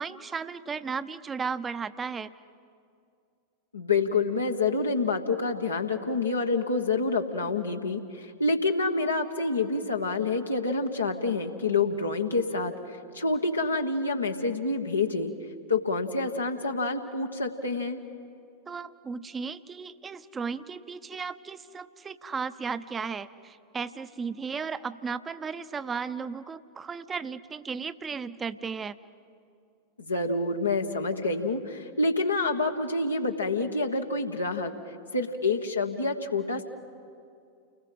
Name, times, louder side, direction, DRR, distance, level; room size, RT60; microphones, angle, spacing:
voice 1, 0.0-2.3 18.7-29.0, right 5 dB, 20° right, 13 dB, 0.8 m, -35 dB
voice 2, 3.7-15.3 15.7-18.0 30.0-34.7 35.1-36.6, left 3 dB, 80° left, 2 dB, 1.4 m, -27 dB
30.0 x 20.0 x 7.9 m, 2.4 s
figure-of-eight pair, 90°, 0 cm